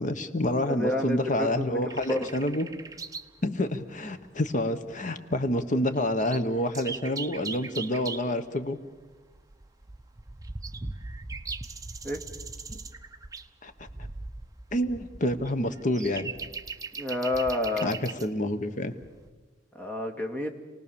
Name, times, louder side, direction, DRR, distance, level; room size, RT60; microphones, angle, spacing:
voice 1, 0.0-2.7 3.4-8.8 12.7-12.8 13.6-13.7 14.7-16.3 17.8-18.9, left 1 dB, 45° left, 9 dB, 1.2 m, -28 dB
voice 2, 0.6-2.3 12.0-12.2 17.0-17.9 19.7-20.5, left 1 dB, 10° left, 3 dB, 2.1 m, -29 dB
sound 1, 1.9-3.4 3.6-3.7 4.5-4.6 4.7-5.1 5.5-5.6 5.9-8.3 9.0-18.3 19.0-19.3, right 4 dB, 20° right, 0.8 m, -40 dB
28.0 x 18.5 x 7.1 m, 1.3 s
head